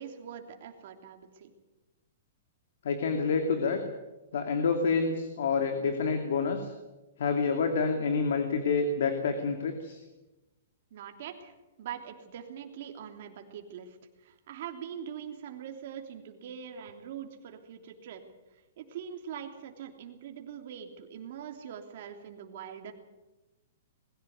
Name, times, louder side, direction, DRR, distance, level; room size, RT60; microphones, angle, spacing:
voice 1, 0.0-1.5 10.9-18.2 18.8-22.9, right 8 dB, 45° right, 4 dB, 3.1 m, -43 dB
voice 2, 2.8-3.8 4.3-6.7 7.2-10.0, left 5 dB, 65° left, 6 dB, 2.6 m, -28 dB
21.5 x 15.5 x 9.5 m, 1.1 s
hypercardioid pair, 170°, 0 cm